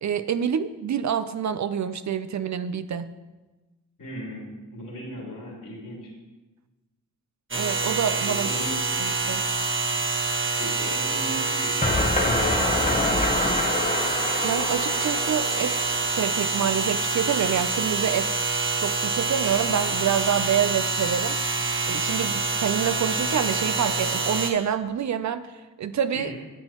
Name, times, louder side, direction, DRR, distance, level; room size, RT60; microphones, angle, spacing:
voice 1, 0.0-3.1 7.5-8.5 9.0-9.4 14.4-18.4 18.8-21.4 21.9-26.3, right 8 dB, 55° right, 12 dB, 0.5 m, -27 dB
voice 2, 4.0-4.4 4.7-6.1 8.3-8.7 10.6-13.4 26.1-26.4, equal, 70° left, -3 dB, 3.3 m, -37 dB
sound 1, 7.5-24.5, right 4 dB, 35° right, 1.5 m, -26 dB
sound 2, 11.8-16.7, left 2 dB, 20° left, 1.0 m, -27 dB
10.5 x 7.8 x 3.0 m, 1.2 s
cardioid pair, 50°, 35 cm